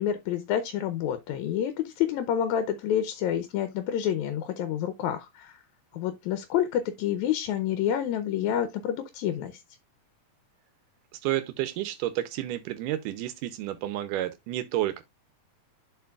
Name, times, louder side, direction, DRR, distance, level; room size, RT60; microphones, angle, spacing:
voice 1, 0.0-5.6 5.9-9.6, left 10 dB, 75° left, 1.9 m, -28 dB
voice 2, 11.1-15.0, right 14 dB, 85° right, 2.3 m, -30 dB
12.0 x 4.5 x 2.3 m
omnidirectional pair, 3.6 m